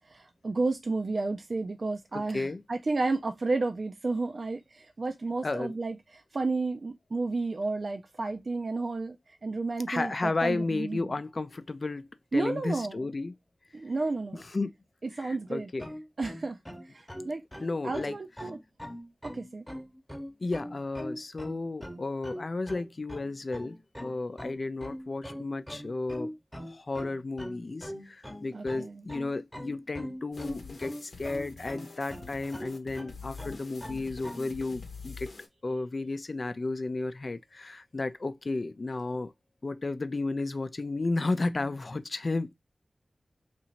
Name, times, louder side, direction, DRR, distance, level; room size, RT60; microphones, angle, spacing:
voice 1, 0.1-11.0 12.3-13.0 13.7-14.4 15.2-15.7 16.2-16.6 16.9-17.4 17.8-18.6 19.2-19.6 28.5-29.0, right 3 dB, 60° right, 0.4 m, -32 dB
voice 2, 2.1-2.6 5.4-5.7 9.9-13.3 14.3-14.7 15.2-15.9 17.6-18.1 20.4-26.3 26.7-35.3 35.6-39.3 39.6-42.5, left 3 dB, 55° left, 0.4 m, -33 dB
sound 1, 15.8-34.5, equal, 5° left, 0.9 m, -42 dB
sound 2, 30.3-35.5, left 4 dB, 75° left, 0.8 m, -46 dB
2.9 x 2.6 x 4.2 m
cardioid pair, 45°, 0 cm